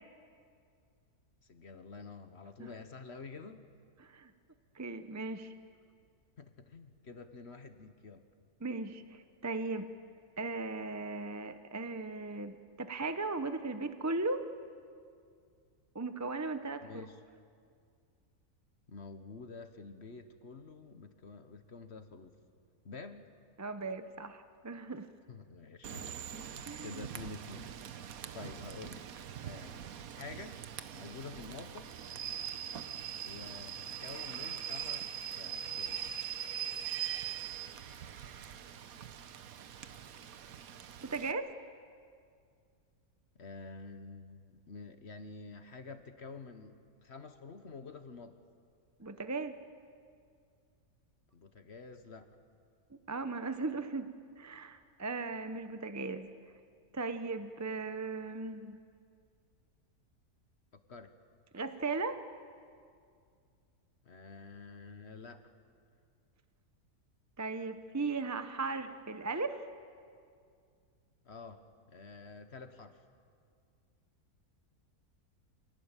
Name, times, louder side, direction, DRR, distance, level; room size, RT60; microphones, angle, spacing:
voice 1, 1.5-3.7 6.4-8.2 16.8-17.2 18.9-22.4 22.8-23.3 25.3-26.5 26.8-28.1 28.3-29.0 29.4-29.8 30.2-30.6 30.9-31.9 33.2-36.1 43.4-48.4 51.3-52.3 60.9-61.1 64.0-65.5 71.2-73.0, left 4 dB, 45° left, 8 dB, 1.4 m, -49 dB
voice 2, 4.0-4.3 4.7-5.5 8.6-9.9 10.4-14.5 15.9-16.9 23.6-25.1 26.7-27.0 41.0-41.5 49.0-49.5 53.1-54.1 54.4-56.3 56.9-58.8 61.5-62.2 67.4-69.7, right 3 dB, 20° right, 9 dB, 0.5 m, -37 dB
Rain / Train, 25.8-41.3, right 9 dB, 70° right, 1.3 m, -42 dB
26.5 x 18.5 x 9.0 m, 2.2 s
omnidirectional pair, 1.6 m